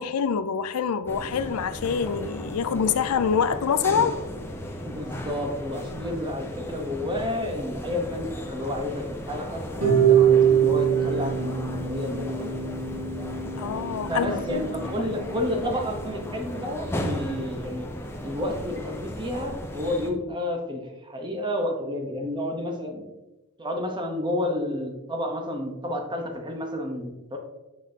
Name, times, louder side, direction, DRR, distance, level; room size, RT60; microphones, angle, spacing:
voice 1, 0.0-4.2 13.6-14.7 15.0-15.1, left 6 dB, 80° left, 0.4 m, -26 dB
sound 1, 1.1-20.1, left 1 dB, 10° left, 0.6 m, -36 dB
voice 2, 4.8-12.6 14.1-17.9 18.2-23.1 23.6-27.4, left 1 dB, 20° right, 0.9 m, -30 dB
Harp, 9.8-15.9, right 8 dB, 85° right, 2.0 m, -24 dB
6.1 x 6.0 x 2.8 m
head